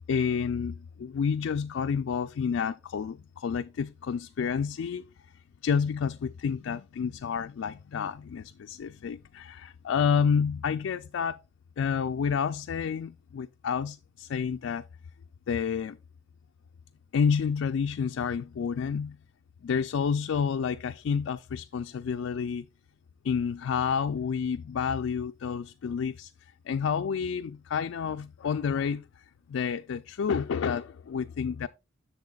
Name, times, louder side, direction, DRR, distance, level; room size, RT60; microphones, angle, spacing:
voice 1, 0.1-5.1 5.6-11.4 11.8-14.8 15.5-16.0 17.1-19.2 19.6-22.7 23.2-29.1 29.5-31.7, left 6 dB, 85° left, 0.3 m, -29 dB
10.5 x 7.0 x 2.3 m
head